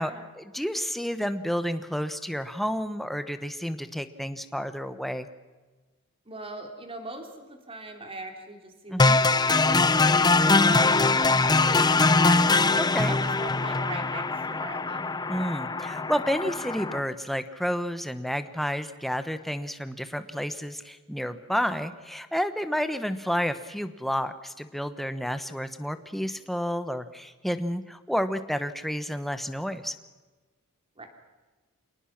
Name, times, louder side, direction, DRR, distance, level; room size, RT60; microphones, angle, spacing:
voice 1, 0.0-5.3 8.9-9.2 12.7-13.1 15.3-29.9, equal, ahead, 10 dB, 1.1 m, -30 dB
voice 2, 6.3-12.6 13.0-15.0 31.0-31.1, right 2 dB, 25° right, 4 dB, 3.5 m, -40 dB
sound 1, 9.0-17.0, left 3 dB, 20° left, 0.7 m, -22 dB
27.5 x 19.0 x 6.0 m, 1.3 s
head